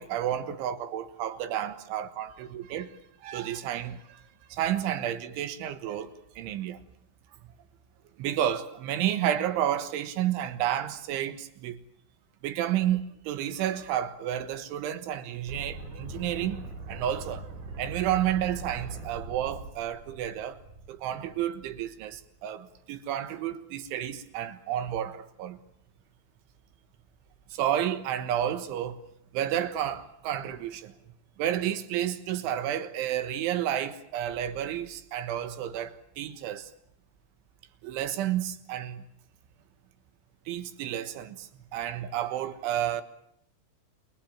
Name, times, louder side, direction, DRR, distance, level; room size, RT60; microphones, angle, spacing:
voice 1, 0.0-4.2 4.5-6.8 8.2-11.8 12.4-17.5 17.8-20.6 20.9-25.6 27.5-29.1 29.3-31.0 31.4-36.7 37.8-39.0 40.5-43.0, right 11 dB, 75° right, 3.7 m, -31 dB
sound 1, 15.5-21.5, right 3 dB, 50° right, 5.6 m, -41 dB
29.0 x 22.0 x 8.8 m
omnidirectional pair, 5.9 m